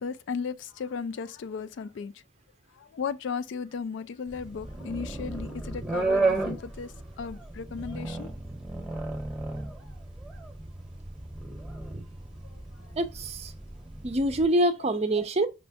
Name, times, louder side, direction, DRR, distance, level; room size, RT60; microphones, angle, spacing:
voice 1, 0.0-2.1 2.8-8.3 12.5-12.6, left 5 dB, 70° left, 0.3 m, -35 dB
sound 1, 4.3-14.5, right 3 dB, 5° right, 0.9 m, -33 dB
voice 2, 13.0-13.5 14.0-15.5, right 1 dB, 35° right, 0.5 m, -25 dB
5.3 x 3.3 x 2.7 m
head